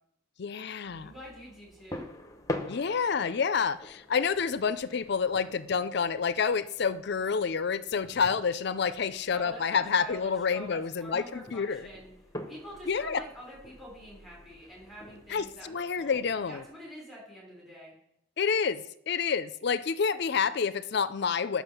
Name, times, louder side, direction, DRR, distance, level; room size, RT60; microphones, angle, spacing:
voice 1, 0.4-1.1 2.7-11.9 12.9-13.2 15.3-16.6 18.4-21.6, left 6 dB, 50° left, 14 dB, 0.4 m, -28 dB
sound 1, 0.9-16.7, left 1 dB, 15° left, 0.8 m, -45 dB
voice 2, 1.0-2.1 9.3-12.1 12.4-16.2 16.5-17.9, equal, ahead, -3 dB, 3.4 m, -46 dB
10.0 x 6.0 x 7.0 m, 0.76 s
head